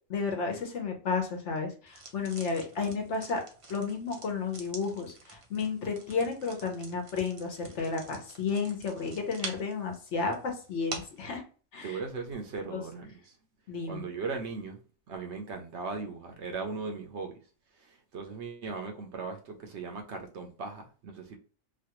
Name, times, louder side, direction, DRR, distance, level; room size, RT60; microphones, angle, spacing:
voice 1, 0.1-3.4 3.7-11.4 11.7-12.0 12.7-12.8 13.7-14.0, left 5 dB, 60° left, 1.1 m, -32 dB
sound 1, 1.9-11.2, right 3 dB, 40° right, 0.4 m, -46 dB
voice 2, 11.8-13.3 13.9-14.8 15.1-17.3 17.8-21.4, right 4 dB, 65° right, 0.9 m, -38 dB
3.1 x 2.3 x 2.9 m
omnidirectional pair, 1.4 m